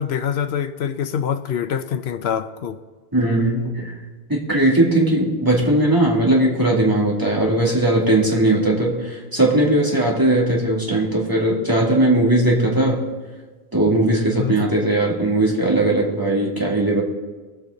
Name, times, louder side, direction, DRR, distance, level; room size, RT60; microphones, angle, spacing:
voice 1, 0.0-2.8 14.4-14.7, left 8 dB, 80° left, 10 dB, 0.9 m, -25 dB
voice 2, 3.1-4.0 4.3-13.0 13.7-17.0, right 1 dB, 20° right, -4 dB, 2.6 m, -18 dB
22.0 x 8.1 x 3.9 m, 1.3 s
omnidirectional pair, 1.1 m